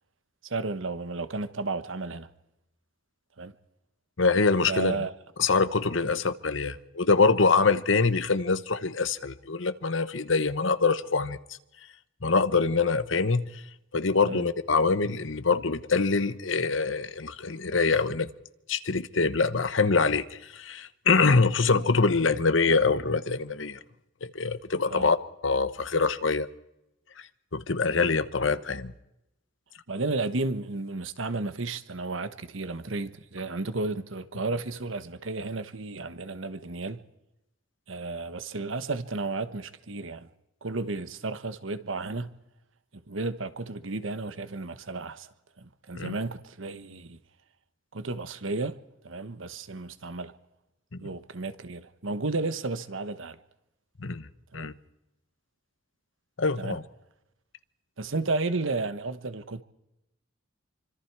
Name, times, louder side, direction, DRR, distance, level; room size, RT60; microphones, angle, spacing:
voice 1, 0.4-2.3 3.4-3.5 4.7-5.1 14.2-14.5 24.9-25.1 29.9-37.0 37.9-40.3 40.6-42.3 43.1-45.3 45.6-47.2 47.9-48.8 49.0-50.3 51.0-53.4 54.5-54.7 56.6-56.8 58.0-59.6, right 3 dB, 75° right, 1.2 m, -33 dB
voice 2, 4.2-5.0 5.4-11.4 12.2-13.5 13.9-18.3 18.7-23.8 24.2-25.2 25.4-26.5 27.5-28.9 46.0-46.1 50.9-51.0 54.0-54.2 54.5-54.7 56.4-56.8, left 4 dB, 70° left, 1.1 m, -24 dB
25.5 x 25.0 x 4.7 m
head